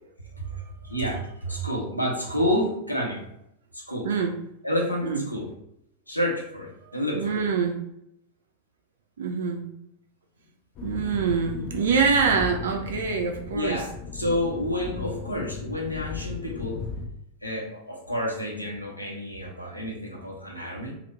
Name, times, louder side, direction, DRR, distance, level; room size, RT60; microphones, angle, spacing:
voice 1, 0.2-0.5 0.8-3.2 3.7-4.1 4.6-5.5 6.1-7.4 13.5-16.8 17.4-20.9, equal, 85° left, -1 dB, 0.7 m, -29 dB
voice 2, 4.0-4.4 5.0-5.2 6.8-7.8 9.2-9.7 10.8-13.8, right 5 dB, 65° right, 2 dB, 0.3 m, -25 dB
sound 1, 10.7-17.1, left 4 dB, 40° left, 0.5 m, -36 dB
2.9 x 2.0 x 3.3 m, 0.78 s
figure-of-eight pair, 90°, 0 cm